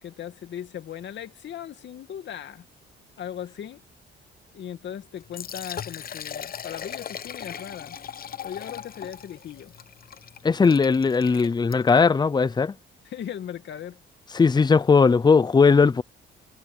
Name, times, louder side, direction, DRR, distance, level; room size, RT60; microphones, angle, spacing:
voice 1, 0.0-2.7 3.2-3.8 4.5-8.0 8.4-9.7 13.0-14.0, left 9 dB, 65° left, 2.3 m, -38 dB
Liquid, 5.2-12.1, left 8 dB, 50° left, 0.9 m, -39 dB
voice 2, 10.4-12.7 14.3-16.0, left 5 dB, 20° left, 0.6 m, -18 dB
cardioid pair, 90°, 20 cm